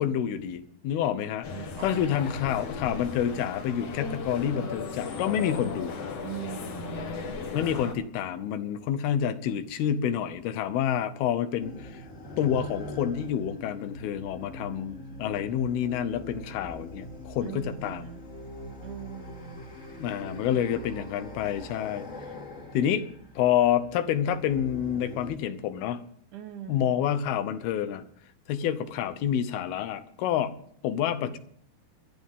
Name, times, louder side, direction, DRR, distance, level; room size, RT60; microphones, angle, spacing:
voice 1, 0.0-1.5 1.8-5.9 7.5-12.0 12.4-18.1 20.0-22.1 22.7-23.1 23.4-26.0 26.7-28.0 28.5-30.5 30.8-31.4, left 9 dB, 90° left, 11 dB, 2.9 m, -28 dB
sound 1, 1.4-7.9, left 4 dB, 55° left, 2.0 m, -36 dB
voice 2, 1.5-2.2 6.2-7.3 17.4-18.2 18.8-19.7 20.3-21.0 26.3-27.1, right 11 dB, 70° right, 6 dB, 2.0 m, -42 dB
sound 2, 11.6-25.4, equal, 30° left, 1.5 m, -43 dB
22.0 x 12.0 x 3.7 m, 0.63 s
omnidirectional pair, 4.3 m